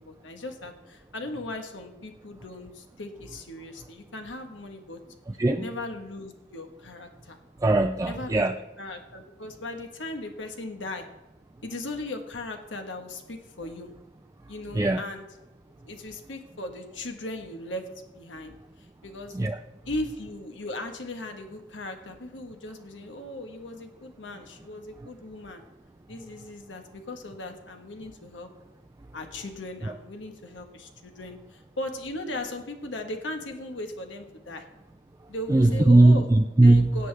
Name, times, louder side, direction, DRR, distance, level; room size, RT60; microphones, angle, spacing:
voice 1, 0.0-5.0 5.6-7.4 8.1-8.5 8.8-11.1 11.6-13.9 14.5-15.2 15.8-17.9 18.1-19.4 19.8-25.6 26.1-28.5 29.1-34.6 35.3-36.3 36.6-37.1, left 2 dB, 85° left, 5 dB, 1.4 m, -38 dB
voice 2, 5.3-5.6 7.6-8.5 14.7-15.0 19.3-19.6 29.8-29.9 35.5-37.0, right 2 dB, 15° right, 6 dB, 0.3 m, -19 dB
17.5 x 7.8 x 3.4 m, 1.0 s
head